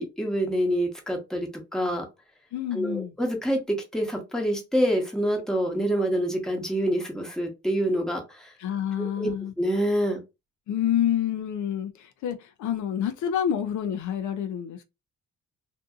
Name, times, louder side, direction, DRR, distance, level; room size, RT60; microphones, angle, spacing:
voice 1, 0.0-2.0 2.7-8.5 9.0-9.3 9.6-10.2, equal, ahead, 0.9 m, -26 dB
voice 2, 2.5-3.2 8.6-9.5 10.7-14.8, left 9 dB, 75° left, 0.5 m, -28 dB
2.6 x 2.5 x 2.4 m
cardioid pair, 90°, 30 cm